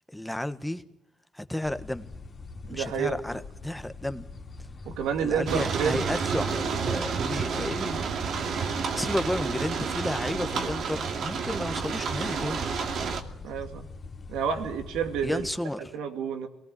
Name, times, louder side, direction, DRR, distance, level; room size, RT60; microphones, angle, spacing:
voice 1, 0.1-0.8 1.3-2.1 2.7-4.2 5.2-8.0 8.9-12.7 15.2-15.8, left 1 dB, 5° left, 1.4 m, -32 dB
sound 1, 1.6-15.5, left 3 dB, 45° left, 3.0 m, -43 dB
voice 2, 2.7-3.2 4.8-6.0 13.4-13.9 14.3-15.4 15.8-16.5, right 7 dB, 90° right, 2.6 m, -29 dB
sound 2, 5.5-13.2, right 6 dB, 70° right, 2.4 m, -30 dB
24.0 x 19.5 x 9.7 m
cardioid pair, 90°, 0 cm